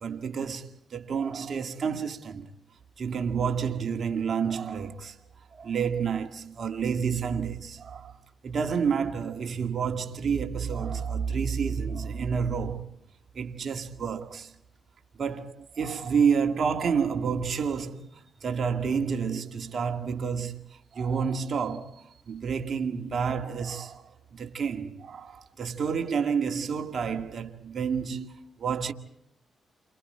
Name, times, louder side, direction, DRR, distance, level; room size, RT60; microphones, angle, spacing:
voice 1, 0.0-2.5 3.0-5.2 5.5-8.1 8.4-12.9 13.4-14.5 15.2-18.1 18.4-20.6 20.9-24.0 24.3-28.9, right 6 dB, 55° right, 1.8 m, -29 dB
29.5 x 26.5 x 4.4 m
cardioid pair, 60°, 0 cm